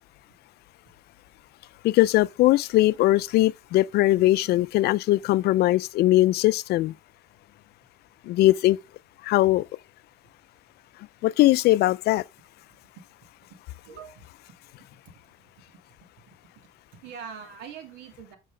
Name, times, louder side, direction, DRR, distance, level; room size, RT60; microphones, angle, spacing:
voice 1, 1.8-6.9 8.3-8.8 9.2-9.6 11.2-12.2, left 16 dB, 70° left, 0.4 m, -20 dB
voice 2, 13.9-14.3 16.3-16.4 17.0-18.4, right 7 dB, 85° right, 2.1 m, -42 dB
7.5 x 6.0 x 3.3 m
cardioid pair, 110°, 17 cm